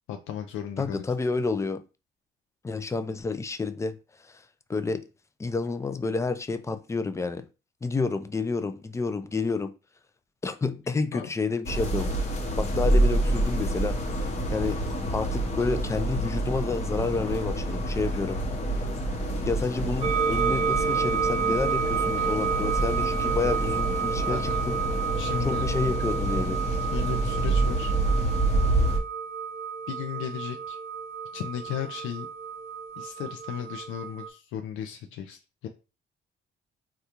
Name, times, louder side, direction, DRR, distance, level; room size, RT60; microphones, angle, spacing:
voice 1, 0.1-1.1 11.1-11.3 22.2-22.4 24.3-24.6 25.2-25.6 26.6-27.9 29.9-30.8 31.3-32.3 33.0-35.7, left 9 dB, 90° left, 0.4 m, -36 dB
voice 2, 0.8-1.8 2.6-4.0 4.7-5.0 5.4-7.4 7.8-9.7 10.4-12.1 12.6-14.0 14.5-14.8 15.1-18.4 19.4-24.5 25.4-26.6, left 4 dB, 15° left, 0.3 m, -29 dB
sound 1, 11.7-29.0, right 1 dB, 35° left, 0.8 m, -27 dB
sound 2, 20.0-34.3, right 6 dB, 30° right, 0.8 m, -30 dB
3.6 x 2.3 x 2.8 m
cardioid pair, 90°, 20 cm